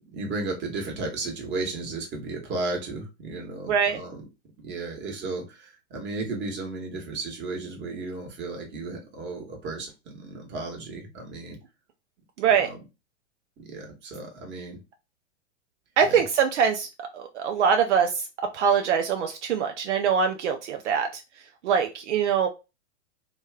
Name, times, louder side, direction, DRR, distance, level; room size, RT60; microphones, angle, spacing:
voice 1, 0.1-4.2 4.6-11.6 12.5-12.8 13.6-14.8 16.0-16.2, right 3 dB, 30° right, 1 dB, 1.3 m, -34 dB
voice 2, 12.4-12.7 16.0-16.9 17.1-18.3 18.5-21.2 21.6-22.5, right 7 dB, 70° right, 5 dB, 0.6 m, -23 dB
3.0 x 2.3 x 3.4 m, 0.27 s
hypercardioid pair, 110°, 36 cm